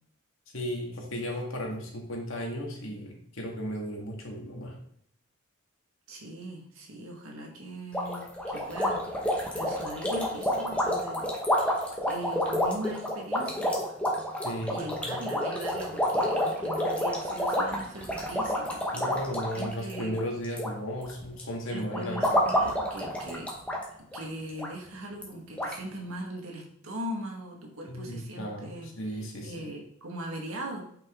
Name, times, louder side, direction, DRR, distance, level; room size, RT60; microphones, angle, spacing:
voice 1, 0.5-4.8 14.4-15.2 18.9-22.3 27.9-29.6, equal, 70° left, 0 dB, 2.0 m, -35 dB
voice 2, 6.1-9.0 9.5-13.8 14.7-19.1 19.5-20.1 21.7-23.5 24.1-28.9 29.4-30.8, right 1 dB, 80° right, 1 dB, 1.8 m, -40 dB
sound 1, 7.9-20.7 21.0-21.4 21.9-23.8 24.1-24.2 24.6-24.7 25.2-25.3 25.6-25.7, equal, 5° left, 1.2 m, -29 dB
8.9 x 5.3 x 3.7 m, 0.68 s
head